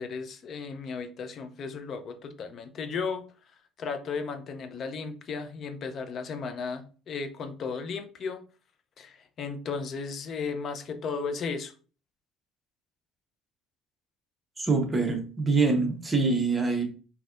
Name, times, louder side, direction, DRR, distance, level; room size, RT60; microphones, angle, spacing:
voice 1, 0.0-3.2 3.8-8.4 9.0-11.7, left 5 dB, 45° left, 0.5 m, -35 dB
voice 2, 14.6-16.8, right 3 dB, 20° right, 0.9 m, -25 dB
4.0 x 2.7 x 2.4 m
cardioid pair, 120°, 0 cm